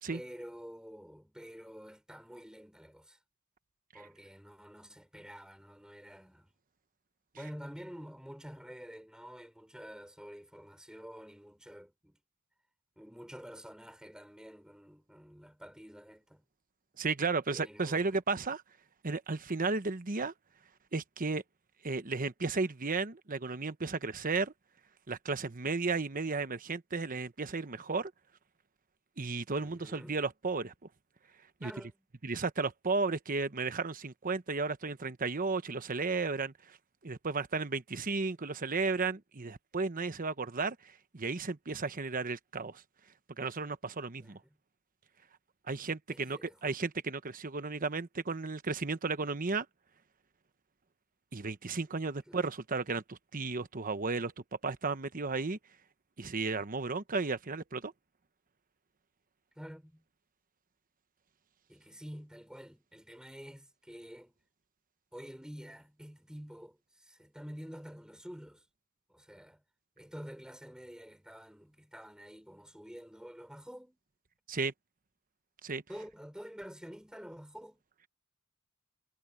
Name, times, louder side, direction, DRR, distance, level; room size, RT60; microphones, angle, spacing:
voice 1, 0.1-3.2 3.9-6.5 7.3-12.2 13.0-16.4 17.5-18.2 29.6-30.2 31.6-32.0 44.2-44.6 46.1-46.8 52.3-52.4 59.6-60.0 61.7-64.4 65.1-68.6 69.1-69.6 70.0-74.0 75.9-77.8, equal, 5° right, 5.7 m, -49 dB
voice 2, 17.0-18.6 19.0-20.3 20.9-21.4 21.8-24.5 25.1-28.1 29.2-30.7 31.6-31.7 32.2-36.8 37.0-42.8 43.4-44.4 45.7-49.7 51.3-54.3 54.6-55.6 56.2-57.9 74.5-74.7 75.6-75.8, right 4 dB, 40° right, 1.0 m, -34 dB
head